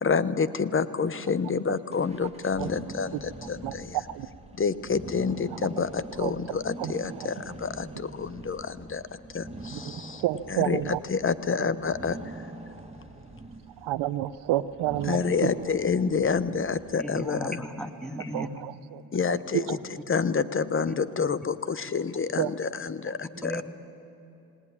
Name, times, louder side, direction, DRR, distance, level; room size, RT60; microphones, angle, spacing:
voice 1, 0.0-4.0 4.6-10.2 10.5-12.4 15.1-17.6 18.2-18.3 19.1-19.8 20.1-23.6, left 5 dB, 30° left, 15 dB, 1.0 m, -28 dB
sound 1, 1.9-17.3, right 2 dB, 15° right, 1.7 m, -44 dB
voice 2, 3.6-4.3 6.2-7.3 9.7-11.0 11.6-11.7 13.8-15.5 18.3-19.0 19.3-19.8 22.4-22.5, right 14 dB, 90° right, 15 dB, 0.7 m, -30 dB
voice 3, 17.0-18.5 23.4-23.6, equal, ahead, 2 dB, 1.9 m, -35 dB
19.5 x 18.5 x 9.8 m, 2.8 s
supercardioid pair, 65°, 40 cm